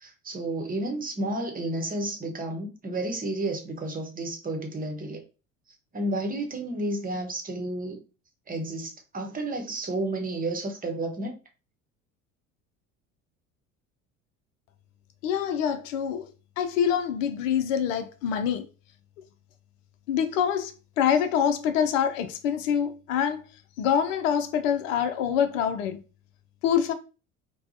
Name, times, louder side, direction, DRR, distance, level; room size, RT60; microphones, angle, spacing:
voice 1, 0.0-5.2 5.9-8.0 8.5-11.3, right 2 dB, 20° right, 1.0 m, -31 dB
voice 2, 15.2-16.3 16.6-18.6 20.1-23.4 23.8-26.0 26.6-26.9, left 8 dB, 70° left, 0.6 m, -25 dB
4.6 x 2.3 x 2.5 m
hypercardioid pair, 65°, 40 cm